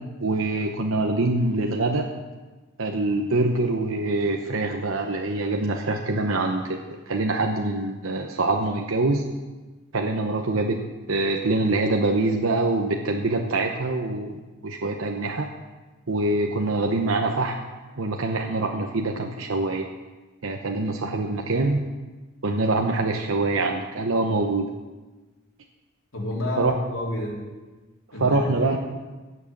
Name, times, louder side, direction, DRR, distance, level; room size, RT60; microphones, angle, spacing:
voice 1, 0.2-2.1 2.8-9.2 9.9-10.8 11.1-14.4 14.6-15.5 16.1-17.6 18.0-19.9 20.4-21.8 22.4-24.7 26.6-26.7 28.2-28.8, right 2 dB, 75° right, 2 dB, 0.9 m, -24 dB
voice 2, 26.1-27.4 28.1-28.8, left 1 dB, 75° left, -3 dB, 3.2 m, -30 dB
16.5 x 6.2 x 7.2 m, 1.2 s
head